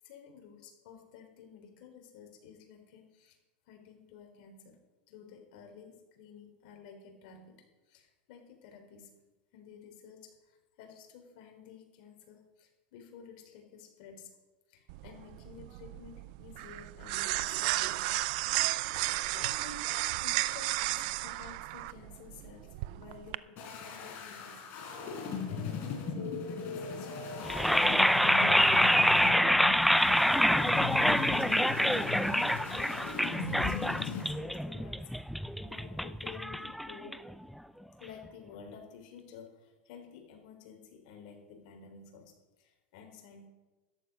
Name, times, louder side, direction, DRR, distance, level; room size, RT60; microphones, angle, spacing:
voice 1, 0.0-3.4 3.7-4.8 5.1-7.6 7.9-9.1 9.5-14.3 14.7-18.1 19.3-24.7 25.5-29.6 30.1-31.5 32.2-35.1 35.6-37.3 38.0-43.5, left 6 dB, 60° left, 2 dB, 3.9 m, -52 dB
sound 1, 14.9-23.4, right 19 dB, 55° right, 0.5 m, -33 dB
sound 2, 23.6-34.2, left 5 dB, 40° left, 4.1 m, -38 dB
sound 3, 27.4-37.5, equal, ahead, 0.3 m, -26 dB
14.0 x 11.0 x 5.4 m, 1.2 s
supercardioid pair, 145°, 5 cm